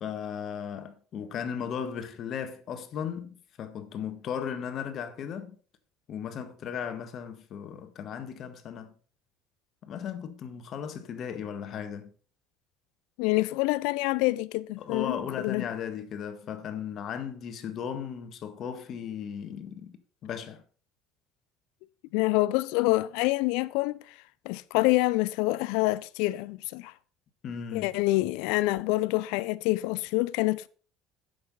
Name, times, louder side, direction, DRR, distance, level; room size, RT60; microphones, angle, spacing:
voice 1, 0.0-5.6 6.1-8.9 9.8-12.1 14.8-19.9 20.2-20.6 27.4-27.9, left 8 dB, 55° left, 1.6 m, -36 dB
voice 2, 13.2-15.6 22.1-24.1 24.5-26.9 27.7-30.7, left 20 dB, 75° left, 0.4 m, -26 dB
8.3 x 6.7 x 5.4 m
supercardioid pair, 80°, 0 cm